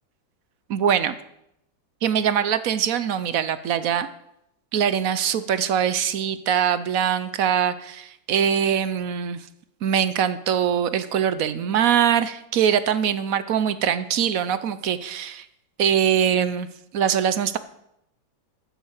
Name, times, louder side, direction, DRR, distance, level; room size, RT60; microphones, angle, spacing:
voice 1, 0.7-1.1 2.0-4.1 4.7-9.5 9.8-15.5 15.8-16.7 16.9-17.6, right 8 dB, 65° right, 13 dB, 1.0 m, -22 dB
13.5 x 6.5 x 8.0 m, 0.79 s
omnidirectional pair, 1.9 m